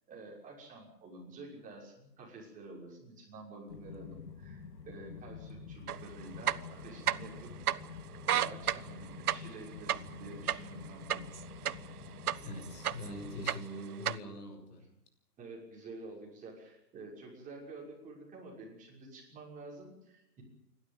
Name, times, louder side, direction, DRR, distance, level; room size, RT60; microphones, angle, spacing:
voice 1, 0.1-7.5 7.8-8.0 8.3-11.2 15.4-20.4, right 2 dB, 15° right, -2 dB, 6.1 m, -49 dB
sound 1, 3.7-13.5, left 5 dB, 90° left, 3.1 m, -48 dB
sound 2, 5.9-6.0 6.4-7.4 7.7-7.8 8.2-11.9 12.3-13.1 13.4-14.2, right 10 dB, 65° right, 0.9 m, -31 dB
voice 2, 12.4-14.9, left 1 dB, 65° left, 6 dB, 6.5 m, -43 dB
28.0 x 12.5 x 9.2 m, 0.77 s
hypercardioid pair, 145°, 49 cm